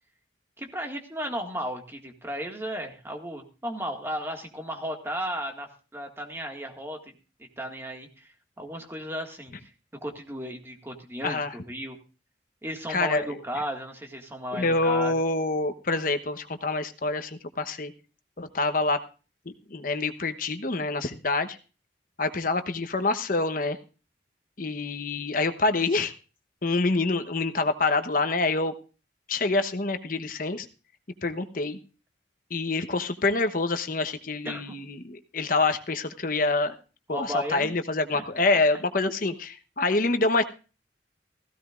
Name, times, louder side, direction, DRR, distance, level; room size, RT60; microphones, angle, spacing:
voice 1, 0.6-7.1 7.6-9.7 10.0-12.0 12.6-15.1 34.5-34.8 37.1-37.7 38.1-38.2, equal, 15° right, 3 dB, 1.9 m, -35 dB
voice 2, 11.2-11.5 12.9-13.4 14.5-17.9 18.4-19.0 19.5-21.6 22.2-23.8 24.6-26.1 26.6-28.7 29.3-30.7 31.2-31.8 32.5-36.7 37.1-40.4, left 3 dB, 50° left, 9 dB, 1.0 m, -26 dB
16.5 x 15.5 x 2.5 m, 0.34 s
head